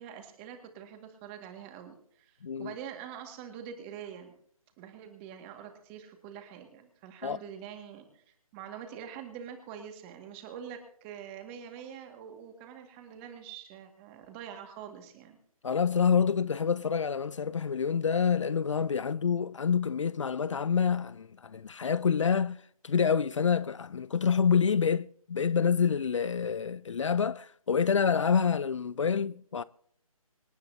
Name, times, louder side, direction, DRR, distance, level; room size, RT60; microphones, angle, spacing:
voice 1, 0.0-4.4 4.8-15.4, right 8 dB, 20° right, 2.0 m, -45 dB
voice 2, 2.4-2.7 7.2-7.4 15.6-22.6 22.8-29.6, left 6 dB, 55° left, 0.5 m, -27 dB
26.0 x 10.5 x 2.8 m
figure-of-eight pair, 150°, 19 cm